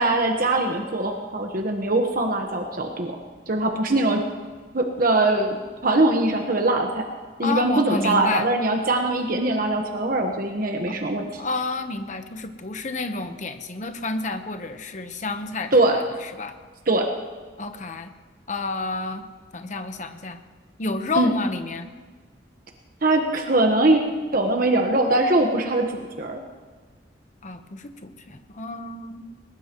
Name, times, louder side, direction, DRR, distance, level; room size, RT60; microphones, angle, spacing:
voice 1, 0.0-3.2 3.5-4.2 4.7-5.6 5.8-7.1 7.4-11.4 15.7-16.0 16.9-17.1 21.2-21.3 23.0-24.0 24.3-26.4, right 2 dB, 50° right, 3 dB, 1.3 m, -22 dB
voice 2, 7.4-8.5 11.4-15.7 16.4-16.5 17.6-18.1 18.5-19.2 19.5-20.4 20.8-21.9 27.4-29.3, left 3 dB, 40° left, 7 dB, 1.0 m, -30 dB
21.0 x 20.0 x 3.1 m, 1.5 s
head